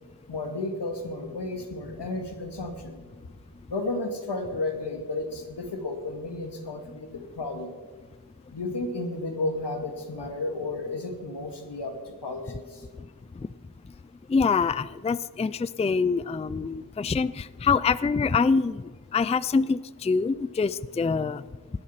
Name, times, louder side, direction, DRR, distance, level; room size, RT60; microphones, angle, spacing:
voice 1, 0.3-3.0 3.7-7.1 7.4-7.7 8.5-12.9, left 2 dB, 90° left, 4 dB, 2.3 m, -32 dB
voice 2, 14.3-18.8 19.1-21.4, left 5 dB, 15° left, 17 dB, 0.4 m, -25 dB
19.0 x 11.5 x 5.8 m, 1.4 s
wide cardioid pair, 70°, 40 cm